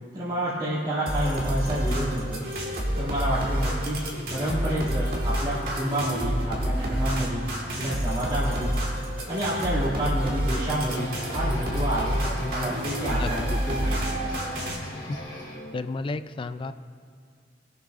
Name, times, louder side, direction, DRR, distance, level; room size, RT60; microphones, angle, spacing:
voice 1, 0.1-2.4 2.9-4.0 4.3-7.5 7.8-8.7 9.3-14.1, right 1 dB, 25° right, -10 dB, 2.4 m, -29 dB
sound 1, 1.1-14.8, equal, 55° right, 1.7 m, -28 dB
sound 2, 10.6-15.7, equal, 45° left, 2.8 m, -39 dB
voice 2, 13.1-13.6 15.1-15.2 15.7-16.7, left 3 dB, 30° left, 12 dB, 0.3 m, -32 dB
22.0 x 7.3 x 2.5 m, 2.3 s
head